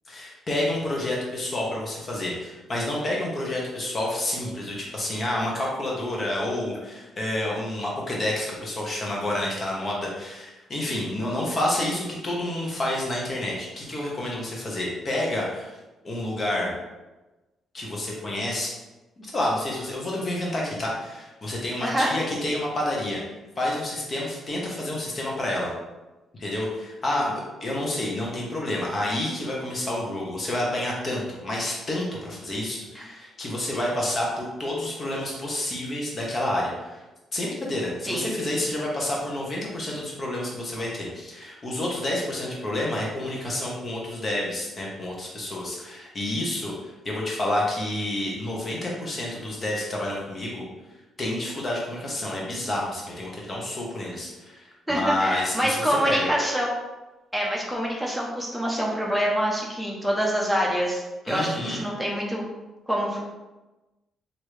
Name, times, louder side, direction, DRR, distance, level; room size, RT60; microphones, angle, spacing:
voice 1, 0.1-15.8 16.0-16.8 17.7-18.7 19.2-23.2 23.6-25.7 26.4-37.0 37.3-50.6 51.2-56.3 61.2-61.8, left 1 dB, 35° left, -3 dB, 1.1 m, -29 dB
voice 2, 54.9-56.7 57.3-62.4 62.9-63.2, equal, ahead, -2 dB, 0.7 m, -26 dB
3.1 x 2.7 x 3.1 m, 1.1 s
cardioid pair, 90°, 0 cm